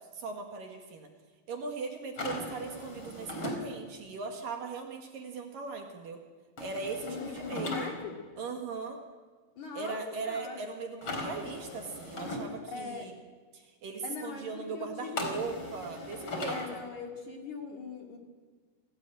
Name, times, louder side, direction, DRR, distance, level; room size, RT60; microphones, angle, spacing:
voice 1, 0.1-1.1 1.5-6.2 6.6-7.9 8.4-9.0 9.7-13.1 13.5-16.8, right 4 dB, 55° right, 3 dB, 3.2 m, -39 dB
sound 1, 2.2-3.6 6.6-7.9 11.0-12.4 15.2-16.7, left 2 dB, 30° left, 4.4 m, -38 dB
voice 2, 7.0-8.2 9.6-10.6 12.7-13.1 14.0-15.2 16.5-18.2, left 5 dB, 50° left, 2 dB, 3.4 m, -40 dB
27.5 x 17.5 x 9.1 m, 1.4 s
omnidirectional pair, 5.0 m